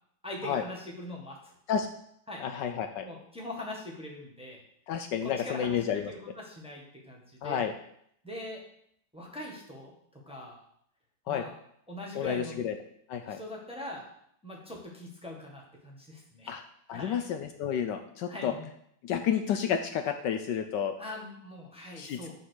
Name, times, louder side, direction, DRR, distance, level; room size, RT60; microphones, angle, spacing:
voice 1, 0.2-1.5 2.3-2.5 3.0-4.6 5.2-5.8 6.1-7.7 8.2-8.6 9.1-10.6 11.3-11.5 11.9-12.6 13.3-14.1 14.4-16.5 16.9-17.2 18.3-18.7 21.0-22.3, left 1 dB, 5° right, -2 dB, 1.2 m, -42 dB
voice 2, 2.4-3.0 4.9-6.1 7.4-7.7 11.3-11.4 12.1-12.8 13.1-13.4 16.5-16.6 16.9-18.5 19.0-20.9 22.0-22.3, left 8 dB, 75° left, 7 dB, 1.2 m, -30 dB
9.2 x 3.8 x 6.4 m, 0.70 s
omnidirectional pair, 2.1 m